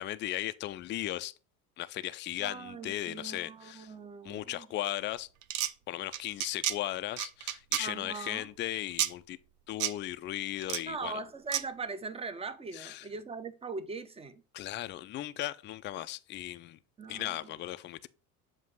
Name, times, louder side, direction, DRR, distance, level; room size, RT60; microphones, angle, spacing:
voice 1, 0.0-1.3 1.8-3.9 4.2-5.3 5.9-9.4 9.7-11.2 12.7-13.1 14.5-16.8 17.1-18.1, left 14 dB, 25° left, 0.4 m, -37 dB
voice 2, 2.4-4.7 7.8-8.5 10.9-14.4 17.0-17.5, right 4 dB, 15° right, 0.6 m, -40 dB
sound 1, 5.4-5.7 6.1-6.8 7.2-7.8 9.0-9.1 9.8-9.9 10.6-10.8 11.5-11.6, right 12 dB, 85° right, 0.6 m, -30 dB
7.5 x 2.7 x 5.4 m
hypercardioid pair, 80°, 44 cm